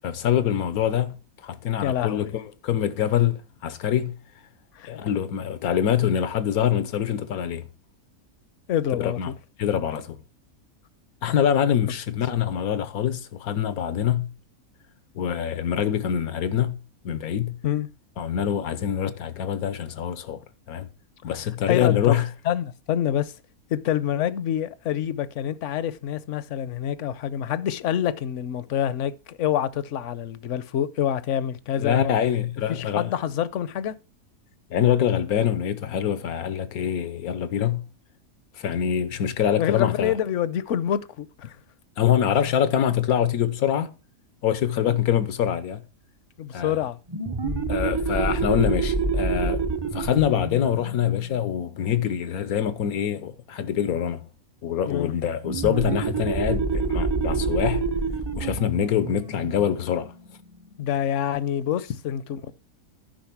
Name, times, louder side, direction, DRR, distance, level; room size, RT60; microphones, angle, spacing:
voice 1, 0.0-1.2 1.4-4.1 4.8-7.6 9.0-9.3 9.6-10.2 11.2-14.3 15.1-16.8 17.0-17.6 18.2-20.4 20.7-20.9 21.2-22.3 31.8-33.1 34.7-37.8 38.6-40.2 42.0-44.0 44.4-45.8 46.5-46.8 47.7-49.6 49.9-54.3 54.6-57.8 58.3-60.1, left 9 dB, 90° left, 1.3 m, -24 dB
voice 2, 1.8-2.3 4.8-4.9 8.7-9.3 17.6-17.9 21.7-22.2 22.5-23.3 23.7-32.2 32.7-34.0 39.6-41.6 44.9-45.0 46.4-47.0 47.4-47.7 54.9-55.1 60.8-62.5, left 10 dB, 65° left, 0.9 m, -27 dB
sound 1, 47.1-52.4 55.4-60.7, right 4 dB, 35° right, 0.4 m, -28 dB
10.5 x 5.3 x 5.9 m
omnidirectional pair, 1.5 m